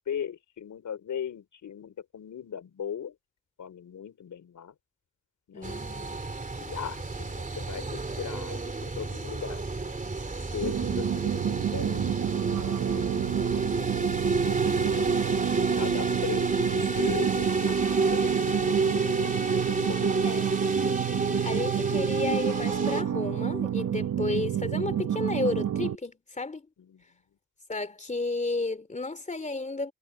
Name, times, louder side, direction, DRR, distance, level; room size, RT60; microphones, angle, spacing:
voice 1, 0.0-3.1 3.6-4.7 5.5-5.8 6.6-10.0 10.4-12.8 13.4-14.9 15.8-20.3 26.8-27.0, left 8 dB, 85° left, 4.6 m, -39 dB
voice 2, 5.5-6.2 16.9-17.1 17.6-17.7 20.2-20.5 21.4-26.7 27.7-29.9, left 3 dB, 25° left, 3.0 m, -32 dB
sound 1, 5.6-23.0, right 3 dB, 25° right, 2.9 m, -29 dB
sound 2, 10.6-26.0, right 10 dB, 80° right, 1.3 m, -29 dB
wide cardioid pair, 105°, 29 cm